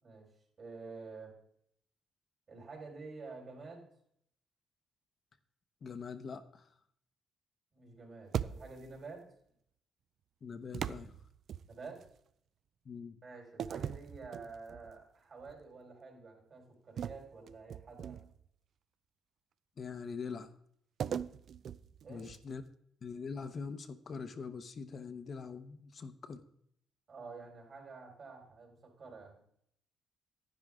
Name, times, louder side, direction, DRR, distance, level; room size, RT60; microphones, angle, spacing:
voice 1, 0.6-1.3 2.5-3.8 7.7-9.3 11.7-12.0 13.2-18.2 22.0-22.2 27.1-29.4, right 4 dB, 50° right, 0 dB, 4.4 m, -49 dB
voice 2, 5.8-6.7 10.4-11.1 12.8-13.2 19.8-20.5 22.1-22.6 23.0-26.4, left 5 dB, 45° left, 9 dB, 0.8 m, -43 dB
sound 1, 8.3-9.0 10.7-12.1 13.6-14.9 15.4-15.6 17.0-18.5 21.0-22.6, right 8 dB, 65° right, 0.4 m, -40 dB
10.5 x 9.7 x 3.6 m, 0.69 s
cardioid pair, 90°, 0 cm